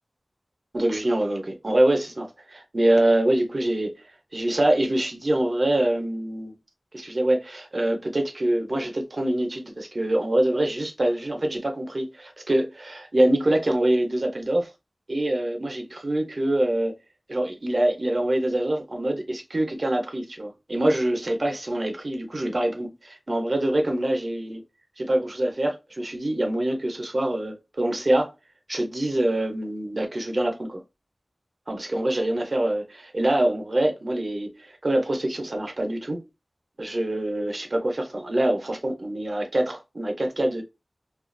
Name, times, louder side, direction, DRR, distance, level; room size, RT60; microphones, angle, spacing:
voice 1, 0.7-4.0 4.3-6.6 6.9-14.7 15.1-16.9 17.3-24.6 25.0-28.3 28.7-30.8 31.7-36.2 36.8-40.6, right 1 dB, 55° right, 0.7 m, -25 dB
2.4 x 2.3 x 2.5 m
wide cardioid pair, 70°, 0 cm